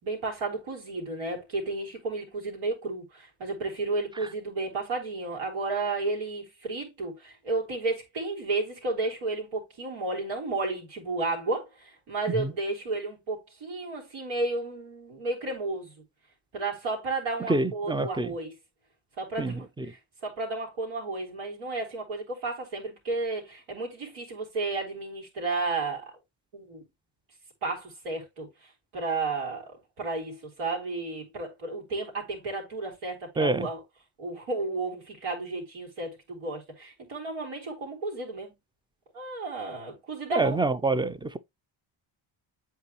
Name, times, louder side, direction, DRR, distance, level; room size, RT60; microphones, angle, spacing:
voice 1, 0.0-15.9 16.5-18.6 19.2-26.1 26.5-26.8 27.6-28.5 28.9-33.8 34.2-38.5 39.1-40.6, right 3 dB, 90° right, 3.7 m, -32 dB
voice 2, 17.5-18.3 19.4-19.9 33.4-33.7 40.3-41.4, right 3 dB, 10° right, 0.4 m, -27 dB
8.3 x 4.7 x 3.0 m
cardioid pair, 100°, 49 cm